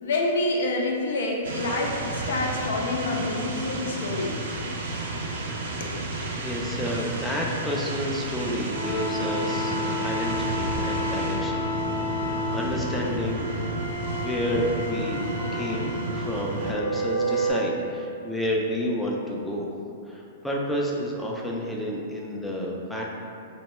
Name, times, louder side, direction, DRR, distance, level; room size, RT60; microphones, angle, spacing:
voice 1, 0.0-4.4 5.8-5.9, left 2 dB, 75° left, -1 dB, 0.5 m, -27 dB
sound 1, 1.4-16.7, right 2 dB, 70° right, 0.4 m, -32 dB
voice 2, 6.3-13.6 14.2-15.2 15.5-19.7 20.1-23.1, equal, ahead, -3 dB, 0.3 m, -30 dB
sound 2, 8.7-17.5, equal, 30° left, 0.7 m, -31 dB
2.7 x 2.1 x 3.0 m, 2.5 s
hypercardioid pair, 130°, 0 cm